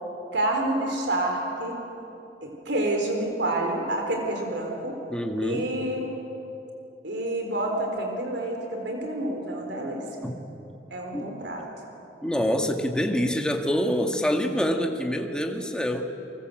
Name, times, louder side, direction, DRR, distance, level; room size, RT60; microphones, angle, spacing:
voice 1, 0.3-1.8 2.4-5.0 5.4-6.1 7.0-10.0 10.9-11.7, right 1 dB, 70° right, 2 dB, 4.2 m, -28 dB
voice 2, 5.1-5.7 10.2-10.4 11.1-11.3 12.2-16.1, equal, 5° left, 3 dB, 1.9 m, -26 dB
30.0 x 23.5 x 7.9 m, 3.0 s
head